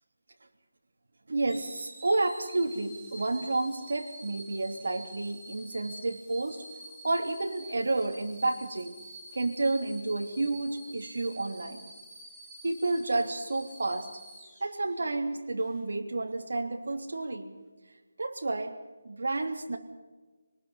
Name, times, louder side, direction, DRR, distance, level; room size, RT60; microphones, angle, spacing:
voice 1, 1.3-6.6 7.0-8.9 9.3-11.8 12.6-14.1 14.6-17.5 18.2-18.8 19.0-19.8, right 2 dB, 70° right, 4 dB, 3.1 m, -30 dB
sound 1, 1.5-15.1 15.6-15.8, right 1 dB, ahead, 2.9 m, -49 dB
26.0 x 19.5 x 5.7 m, 1.3 s
figure-of-eight pair, 175°, 0 cm